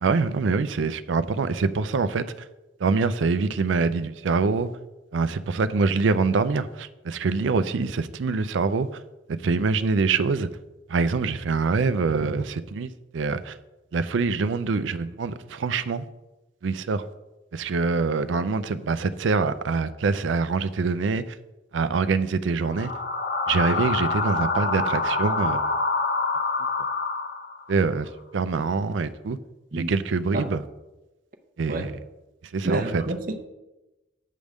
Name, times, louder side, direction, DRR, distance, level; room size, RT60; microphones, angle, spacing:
voice 1, 0.0-2.3 2.8-4.7 5.1-9.0 9.3-10.5 10.9-13.6 13.9-16.1 16.6-17.1 17.5-21.4 21.7-22.9 23.5-25.7 27.7-29.4 29.7-30.6 31.6-31.9 32.5-33.0, right 4 dB, 85° right, 13 dB, 0.4 m, -25 dB
sound 1, 22.7-27.8, left 3 dB, 50° left, 0.6 m, -26 dB
voice 2, 32.6-33.4, right 1 dB, 45° right, 7 dB, 0.6 m, -28 dB
8.4 x 3.5 x 6.4 m, 1.0 s
head